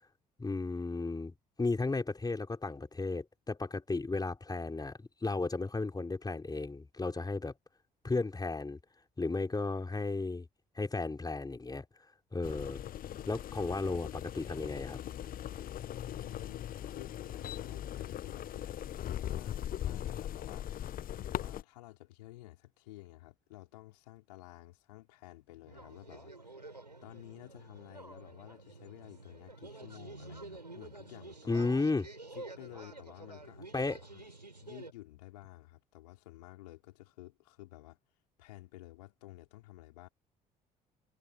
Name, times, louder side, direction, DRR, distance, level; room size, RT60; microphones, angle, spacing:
voice 1, 0.4-7.5 8.0-8.8 9.2-10.5 10.8-11.8 12.3-12.8 13.3-15.0 31.5-32.1 33.7-34.0, left 3 dB, 20° left, 4.6 m, -34 dB
sound 1, 12.4-21.6, left 11 dB, 45° left, 1.0 m, -40 dB
voice 2, 16.1-31.8 32.3-34.2 34.6-38.0 38.4-40.1, left 18 dB, 70° left, 4.6 m, -53 dB
sound 2, 25.7-34.9, right 2 dB, 90° right, 6.5 m, -49 dB
figure-of-eight pair, 50°, 21 cm